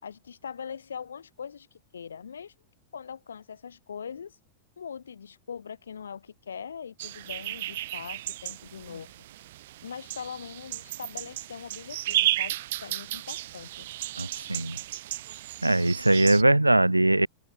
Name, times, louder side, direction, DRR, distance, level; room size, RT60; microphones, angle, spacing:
voice 1, 0.0-2.5 2.9-4.4 4.8-9.2 9.8-13.9, left 7 dB, 70° left, 4.8 m, -41 dB
sound 1, 7.0-16.4, right 15 dB, 55° right, 3.3 m, -34 dB
voice 2, 14.2-14.8 15.6-17.3, right 1 dB, 85° right, 0.9 m, -21 dB
open air
figure-of-eight pair, 90°, 0 cm